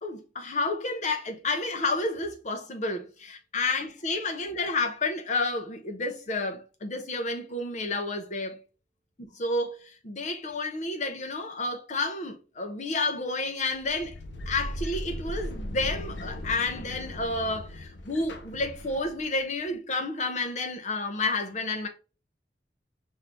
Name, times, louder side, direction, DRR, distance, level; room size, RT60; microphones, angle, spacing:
voice 1, 0.0-8.6 9.4-14.2 14.5-21.9, left 2 dB, 40° left, 0.6 m, -30 dB
sound 1, 13.7-19.4, equal, 80° left, 0.6 m, -38 dB
5.9 x 2.7 x 3.4 m
head